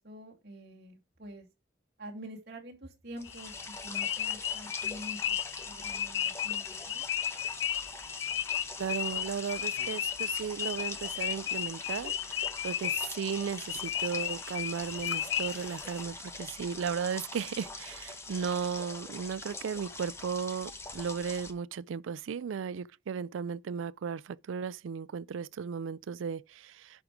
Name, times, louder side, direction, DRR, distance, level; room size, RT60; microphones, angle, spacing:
voice 1, 0.0-1.5 2.0-5.4 5.6-7.1, equal, 55° right, 2.8 m, -46 dB
sound 1, 3.2-16.0, left 10 dB, 75° left, 0.6 m, -35 dB
sound 2, 3.2-21.5, left 3 dB, 15° left, 0.9 m, -43 dB
voice 2, 8.8-27.0, right 6 dB, 90° right, 0.4 m, -35 dB
11.5 x 4.7 x 4.9 m
head